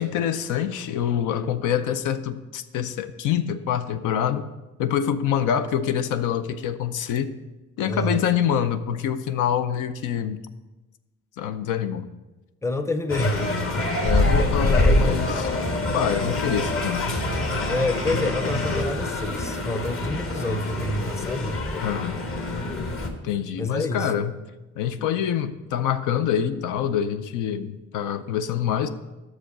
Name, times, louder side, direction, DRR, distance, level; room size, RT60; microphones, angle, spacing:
voice 1, 0.0-4.4 4.8-7.3 7.8-10.4 11.4-12.0 14.0-15.5 15.9-17.0 21.8-22.2 23.2-24.3 24.8-28.9, left 9 dB, 85° left, 10 dB, 0.5 m, -25 dB
voice 2, 7.8-8.2 12.6-13.5 14.3-15.2 17.6-21.6 23.6-24.1, left 2 dB, 10° left, 9 dB, 0.6 m, -28 dB
sound 1, 13.1-23.1, left 1 dB, 45° left, 1.2 m, -25 dB
6.4 x 4.9 x 6.6 m, 1.1 s
cardioid pair, 90°, 30 cm